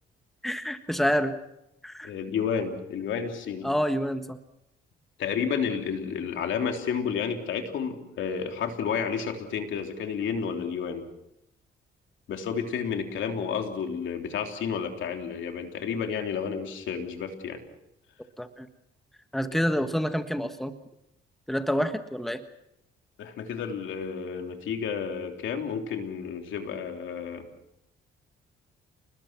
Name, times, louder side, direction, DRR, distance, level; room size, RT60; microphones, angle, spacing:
voice 1, 0.4-1.4 1.8-2.1 3.6-4.4 18.4-18.7 19.3-20.7 21.5-22.4, equal, ahead, 9 dB, 1.5 m, -28 dB
voice 2, 2.0-3.7 5.2-11.1 12.3-17.6 23.2-27.5, left 6 dB, 75° left, 4 dB, 3.3 m, -31 dB
30.0 x 20.5 x 6.1 m, 0.86 s
cardioid pair, 90°, 20 cm